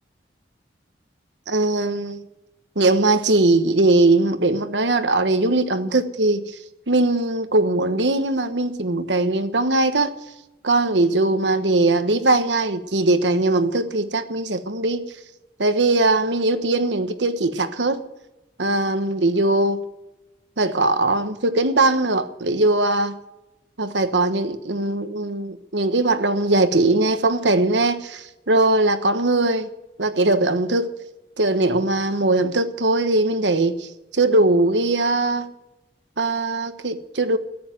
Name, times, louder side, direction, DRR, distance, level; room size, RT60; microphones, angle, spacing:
voice 1, 1.5-2.2 2.7-6.4 6.9-10.1 10.6-15.0 15.6-18.0 18.6-19.8 20.6-23.1 23.8-29.7 30.0-30.9 31.4-35.4 36.2-37.4, right 2 dB, 90° right, 1.2 m, -20 dB
13.5 x 9.8 x 9.2 m
head